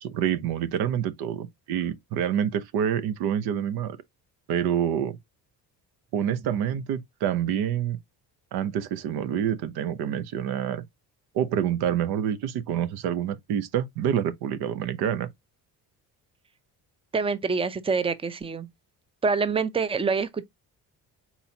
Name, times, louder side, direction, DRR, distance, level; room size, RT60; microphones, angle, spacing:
voice 1, 0.0-4.0 4.5-5.2 6.1-8.0 8.5-10.8 11.3-15.3, right 9 dB, 90° right, 0.8 m, -27 dB
voice 2, 17.1-18.7 19.2-20.4, right 4 dB, 15° right, 0.6 m, -26 dB
4.2 x 4.2 x 2.7 m
cardioid pair, 95°, 37 cm